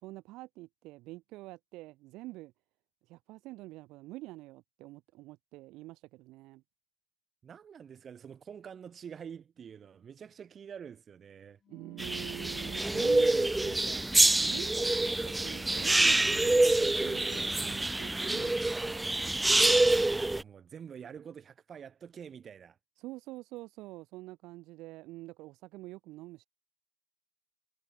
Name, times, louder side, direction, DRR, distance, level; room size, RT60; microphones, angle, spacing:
voice 1, 0.0-2.5 3.1-6.6 11.7-14.0 14.4-19.1 23.0-26.5, right 19 dB, 80° right, 1.2 m, -46 dB
voice 2, 7.4-11.6 19.7-22.8, right 7 dB, 35° right, 3.9 m, -47 dB
Wind instrument woodwind instrument, 11.6-18.1, left 8 dB, 40° left, 3.1 m, -60 dB
sound 1, 12.0-20.4, right 2 dB, 10° right, 0.4 m, -26 dB
cardioid pair, 135°, 0 cm